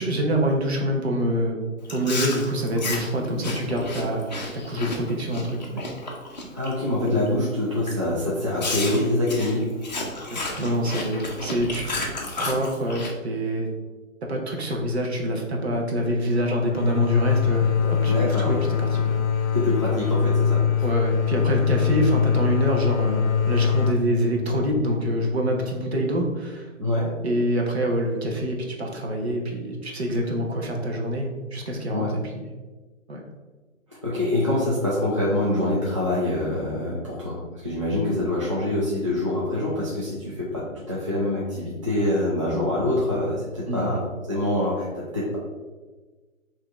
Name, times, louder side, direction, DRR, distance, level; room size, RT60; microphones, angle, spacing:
voice 1, 0.0-1.6 1.9-4.2 4.5-5.8 10.3-11.9 12.4-13.7 14.3-19.2 20.8-26.7 27.2-32.5 33.1-33.2 43.7-44.0, equal, 50° right, 1 dB, 0.9 m, -26 dB
Chewing mastication, 1.8-6.7 7.1-7.4 7.9-8.0 8.6-13.1, left 2 dB, 35° left, 0.6 m, -32 dB
voice 2, 6.5-9.7 18.1-18.6 19.5-20.8 26.8-27.1 31.9-32.1 34.0-37.4 37.6-44.0 44.3-45.4, left 1 dB, 25° right, -8 dB, 0.5 m, -25 dB
sound 1, 16.7-26.2, left 7 dB, 75° left, 0.6 m, -23 dB
5.0 x 2.8 x 3.4 m, 1.3 s
hypercardioid pair, 170°, 41 cm